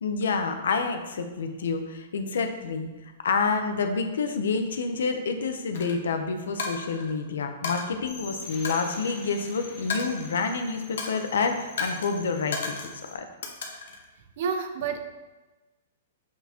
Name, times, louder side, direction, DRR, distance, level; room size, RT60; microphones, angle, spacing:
voice 1, 0.0-2.9 3.2-12.7 13.1-13.2, left 4 dB, 90° left, 6 dB, 0.8 m, -28 dB
Coin (dropping), 5.7-5.9 6.6-7.1 7.6-7.8 8.6-9.5 9.9-10.6 11.0-11.3 11.8-12.1 12.5-13.0 13.4-14.0, left 4 dB, 70° left, 1.2 m, -34 dB
sound 1, 8.1-13.1, left 2 dB, 40° left, 1.7 m, -45 dB
voice 2, 14.4-15.0, right 6 dB, 50° right, 7 dB, 0.7 m, -29 dB
6.5 x 5.9 x 3.0 m, 1.2 s
hypercardioid pair, 160°, 0 cm